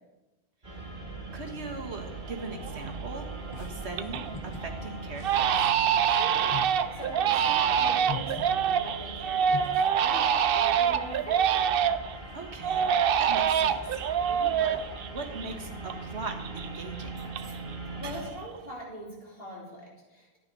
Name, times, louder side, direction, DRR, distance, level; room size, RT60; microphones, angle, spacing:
sound 1, 0.6-18.3, right 2 dB, 45° right, 2.8 m, -41 dB
voice 1, 1.3-3.3 3.6-5.7 12.1-12.9 13.2-14.0 14.6-14.8 15.1-17.2, right 3 dB, 85° right, 3 dB, 1.8 m, -40 dB
Crying sobbing, 2.1-2.2 2.6-3.1 3.5-4.3 4.6-4.8 5.2-12.2 12.6-16.0 16.2-17.7 18.0-18.6, right 8 dB, 65° right, 0.7 m, -26 dB
sound 2, 3.5-9.6, left 5 dB, 35° left, 0.9 m, -43 dB
voice 2, 6.1-11.7 14.3-14.5 18.0-20.4, equal, 60° left, -4 dB, 4.0 m, -42 dB
13.0 x 9.8 x 5.4 m, 1.1 s
omnidirectional pair, 1.1 m